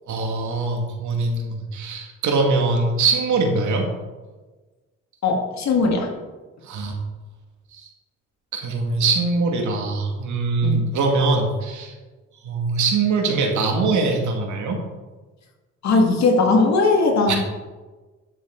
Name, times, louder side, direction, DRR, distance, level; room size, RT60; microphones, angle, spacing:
voice 1, 0.1-3.9 6.6-6.9 7.7-7.9 8.5-11.9 12.4-14.8 17.3-17.4, right 3 dB, 75° right, 1 dB, 2.1 m, -22 dB
voice 2, 5.2-6.1 10.6-10.9 15.8-17.4, left 3 dB, 65° left, 2 dB, 2.0 m, -19 dB
11.5 x 6.8 x 3.9 m, 1.3 s
cardioid pair, 90°, 30 cm